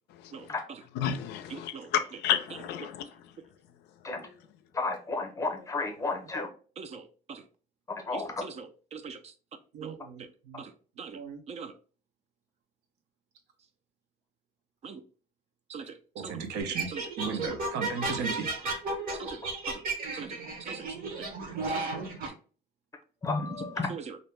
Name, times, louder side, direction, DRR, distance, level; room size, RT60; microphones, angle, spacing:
voice 1, 0.3-0.8 1.5-1.9 2.5-2.9 6.8-7.4 8.1-9.3 9.8-10.3 10.6-11.2 11.5-11.7 14.8-15.0 15.7-16.3 16.9-17.0 17.4-17.5 19.1-19.8 20.1-21.3 21.7-21.9 22.2-22.4 23.8-24.2, right 5 dB, 40° right, 0.4 m, -43 dB
voice 2, 1.0-3.0, left 9 dB, 85° left, 0.4 m, -30 dB
voice 3, 4.7-6.5 8.1-8.4 23.2-23.9, left 3 dB, 20° left, 0.7 m, -32 dB
voice 4, 9.7-10.6 11.1-11.4 16.1-18.5, right 5 dB, 85° right, 0.6 m, -36 dB
sound 1, 16.6-22.3, right 3 dB, 60° right, 0.9 m, -34 dB
2.6 x 2.1 x 3.1 m
cardioid pair, 110°, 17 cm